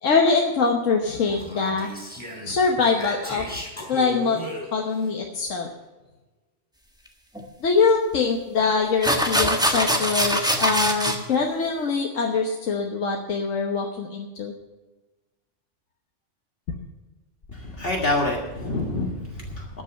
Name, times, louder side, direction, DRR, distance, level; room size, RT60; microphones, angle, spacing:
voice 1, 0.0-1.9 2.4-3.4 3.9-4.4 4.7-5.7 7.6-14.5 16.7-16.8, left 4 dB, 90° left, 1 dB, 1.5 m, -23 dB
Speech, 1.2-5.1, equal, 10° left, 4.2 m, -37 dB
sound 1, 7.4-7.5 8.6-8.7 9.0-11.2, equal, 5° right, 1.3 m, -22 dB
voice 2, 17.5-19.8, left 2 dB, 50° left, -1 dB, 1.9 m, -27 dB
13.5 x 6.2 x 8.9 m, 1.1 s
omnidirectional pair, 1.3 m